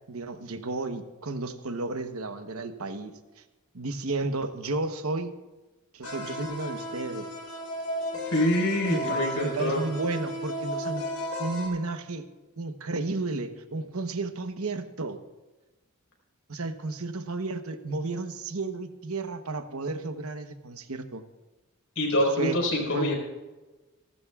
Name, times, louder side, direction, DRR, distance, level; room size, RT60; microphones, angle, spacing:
voice 1, 0.1-3.1 3.7-5.3 5.9-7.3 8.9-11.0 11.4-12.2 12.6-15.2 16.5-21.2 22.4-22.6 22.9-23.1, right 3 dB, 80° right, 8 dB, 1.0 m, -32 dB
sound 1, 6.0-11.7, equal, 85° left, 3.7 m, -34 dB
voice 2, 8.3-9.8 21.9-23.2, left 1 dB, 65° left, 0 dB, 4.8 m, -25 dB
29.0 x 12.5 x 2.4 m, 1.2 s
head